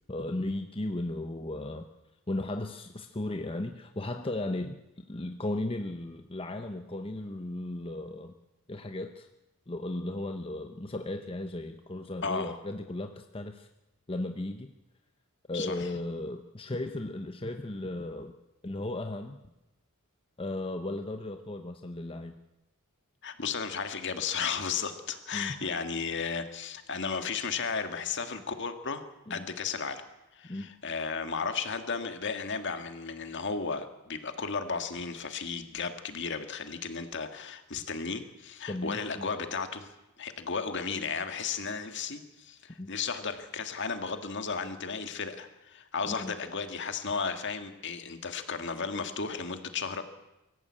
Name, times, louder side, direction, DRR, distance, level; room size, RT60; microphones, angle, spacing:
voice 1, 0.1-1.8 2.3-8.3 8.7-9.3 9.7-13.7 14.1-14.7 15.5-18.3 18.6-19.4 20.4-22.3 25.3-25.6 29.3-29.4 30.5-30.7 38.7-39.3 42.8-42.9 46.1-46.3, left 1 dB, 25° left, 6 dB, 0.9 m, -36 dB
voice 2, 12.2-12.6 15.5-15.9 23.2-29.0 29.3-30.0 30.3-39.9 40.2-50.0, left 5 dB, 55° left, 8 dB, 1.9 m, -34 dB
24.0 x 14.5 x 8.7 m, 0.96 s
head